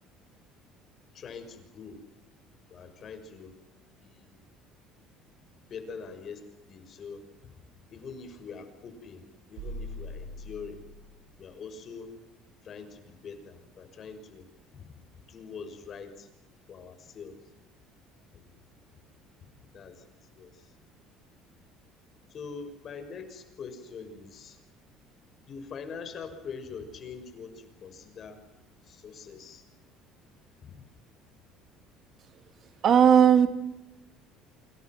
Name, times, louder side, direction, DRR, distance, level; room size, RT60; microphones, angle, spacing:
voice 1, 1.1-2.0 2.7-3.5 4.0-4.3 5.5-7.6 7.9-9.2 9.5-10.8 11.4-12.1 12.6-14.5 14.7-15.0 15.3-16.3 16.7-17.4 18.3-18.6 19.7-20.0 20.3-20.7 22.3-24.6 25.5-28.4 28.9-29.6 30.6-30.7, left 5 dB, 40° left, 8 dB, 6.2 m, -43 dB
sound 1, 9.6-11.4, left 1 dB, 75° right, 7.9 m, -41 dB
voice 2, 32.8-33.5, right 8 dB, 45° right, 9 dB, 2.8 m, -17 dB
28.5 x 26.5 x 6.1 m, 0.94 s
cardioid pair, 120°, 0 cm